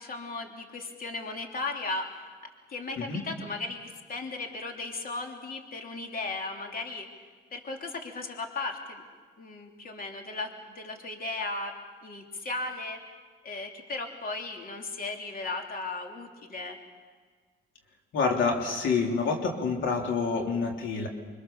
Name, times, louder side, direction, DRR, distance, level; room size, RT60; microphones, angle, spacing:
voice 1, 0.0-2.3 2.7-7.2 7.5-9.0 9.4-11.7 12.0-13.0 13.4-16.8, left 3 dB, 45° left, 2 dB, 3.2 m, -36 dB
voice 2, 18.1-21.1, left 4 dB, 75° left, 1 dB, 3.3 m, -27 dB
25.0 x 25.0 x 7.0 m, 1.5 s
cardioid pair, 90°, 20 cm